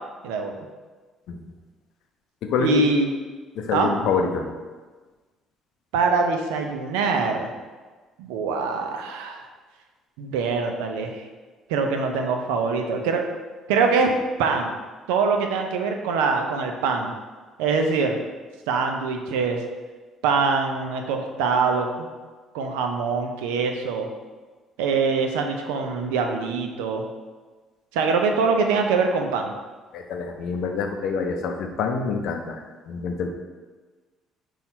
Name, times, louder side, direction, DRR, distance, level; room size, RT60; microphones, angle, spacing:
voice 1, 0.2-0.6 2.6-3.1 3.7-3.9 5.9-7.5 8.2-9.5 10.2-11.2 11.7-13.2 13.7-14.1 14.4-14.7 15.1-17.1 17.6-18.2 18.7-19.6 20.2-22.1 22.5-24.1 24.8-27.0 27.9-29.6, right 4 dB, 85° right, 3 dB, 0.4 m, -23 dB
voice 2, 2.4-2.9 3.6-4.5 29.9-33.3, left 5 dB, 70° left, 4 dB, 0.5 m, -26 dB
4.2 x 2.4 x 4.2 m, 1.3 s
supercardioid pair, 65°, 0 cm